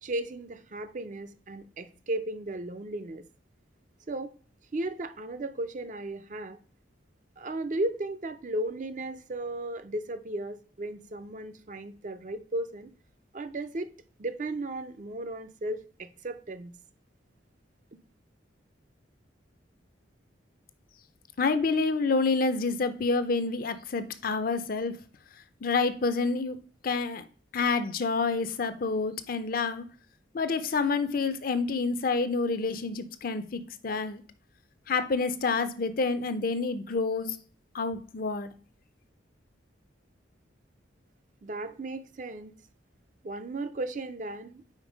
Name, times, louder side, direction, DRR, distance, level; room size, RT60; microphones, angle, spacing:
voice 1, 0.0-3.2 4.1-4.3 4.7-6.6 7.4-12.9 13.3-13.9 14.2-16.7 41.4-42.5 43.2-44.6, right 1 dB, 40° right, 0.5 m, -35 dB
voice 2, 21.4-24.9 25.6-26.6 26.8-27.2 27.5-29.8 30.3-34.2 34.9-37.4 37.7-38.5, left 4 dB, 45° left, 0.5 m, -28 dB
5.2 x 4.6 x 5.1 m
head